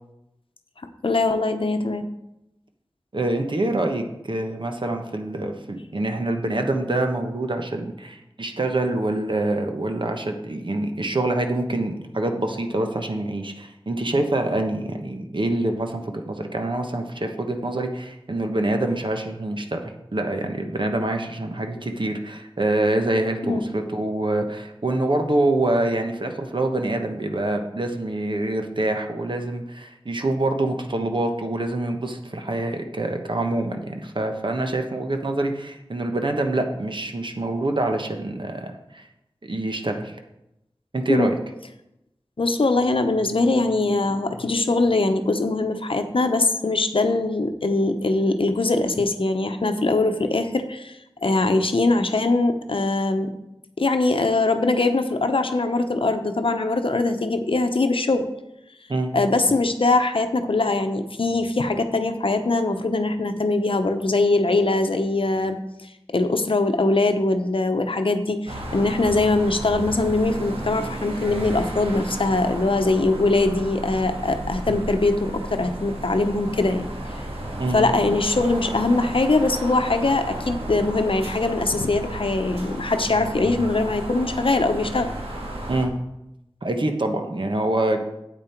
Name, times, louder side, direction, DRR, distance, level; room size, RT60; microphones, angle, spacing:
voice 1, 1.0-2.0 23.4-23.7 41.1-41.3 42.4-51.0 51.2-53.3 53.8-58.3 59.1-65.6 66.1-77.1 77.7-85.1, left 2 dB, 65° left, 7 dB, 0.8 m, -22 dB
voice 2, 3.1-39.0 39.4-40.1 40.9-41.4 58.9-59.1 77.6-77.8 85.7-85.9 86.6-88.0, right 2 dB, 55° right, 4 dB, 1.2 m, -25 dB
sound 1, 68.5-85.9, right 1 dB, 85° right, 1.8 m, -33 dB
8.9 x 8.4 x 4.5 m, 0.88 s
wide cardioid pair, 60°, 10 cm